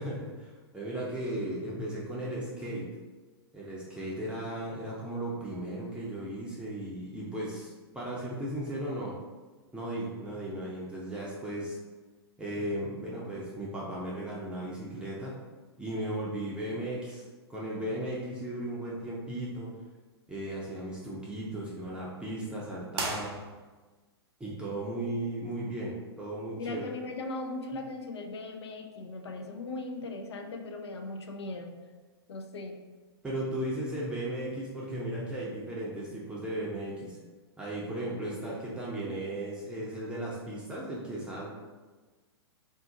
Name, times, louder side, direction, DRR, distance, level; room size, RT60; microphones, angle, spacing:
voice 1, 0.0-2.9 3.5-9.2 9.7-11.8 12.4-15.3 15.8-17.2 17.5-19.7 20.3-23.3 24.4-26.9 33.2-37.2 37.6-41.5, right 1 dB, 5° right, -6 dB, 0.5 m, -36 dB
sound 1, 22.9-24.0, right 3 dB, 65° right, 0.7 m, -36 dB
voice 2, 26.5-31.7 32.3-32.8, left 2 dB, 80° left, 4 dB, 0.5 m, -38 dB
2.5 x 2.4 x 3.7 m, 1.3 s
hypercardioid pair, 115°, 14 cm